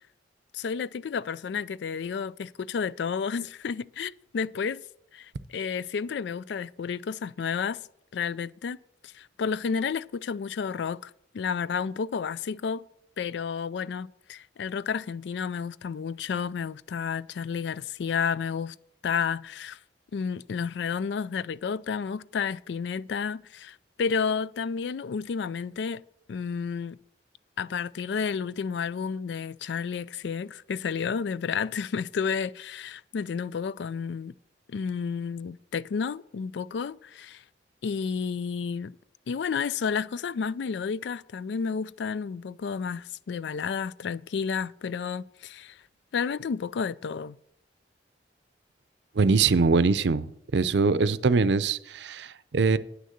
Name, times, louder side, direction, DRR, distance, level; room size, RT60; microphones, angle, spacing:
voice 1, 0.5-4.8 5.1-7.8 8.1-8.8 9.0-12.8 13.2-18.8 19.0-19.8 20.1-26.0 26.3-27.0 27.6-34.3 34.7-37.4 37.8-38.9 39.3-45.8 46.1-47.4, left 6 dB, 70° left, 0.4 m, -31 dB
voice 2, 49.2-52.8, right 4 dB, 70° right, 0.5 m, -23 dB
9.5 x 6.5 x 7.8 m
head